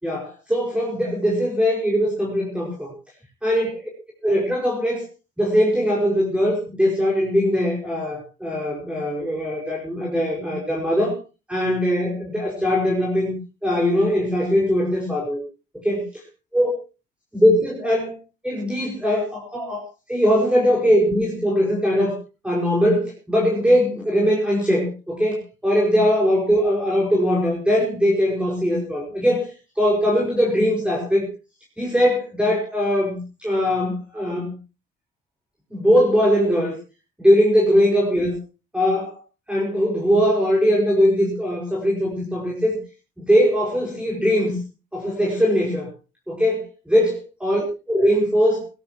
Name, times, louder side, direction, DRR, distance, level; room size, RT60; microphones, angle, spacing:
voice 1, 0.0-2.9 3.4-3.8 4.2-5.0 5.4-11.2 11.5-13.4 13.6-15.4 15.7-16.0 16.5-16.7 17.3-18.2 18.4-19.8 20.1-22.2 22.4-29.5 29.8-31.3 31.8-34.6 35.7-36.7 37.2-38.4 38.7-39.2 39.5-42.8 43.2-44.6 44.9-45.9 46.3-48.6, equal, 5° right, -3 dB, 5.2 m, -20 dB
18.5 x 16.5 x 2.9 m, 0.31 s
cardioid pair, 90°, 20 cm